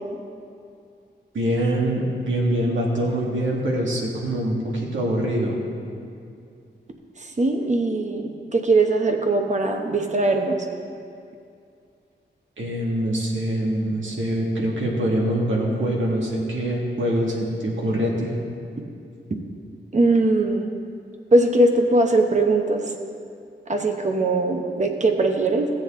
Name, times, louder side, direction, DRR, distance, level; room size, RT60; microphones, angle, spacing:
voice 1, 1.3-5.6 12.6-18.4, right 1 dB, 85° right, -2 dB, 1.9 m, -24 dB
voice 2, 7.4-10.6 19.9-20.7 21.3-22.9 23.7-25.7, right 2 dB, 40° right, 4 dB, 0.9 m, -20 dB
16.0 x 7.8 x 3.7 m, 2.4 s
wide cardioid pair, 135°, 20 cm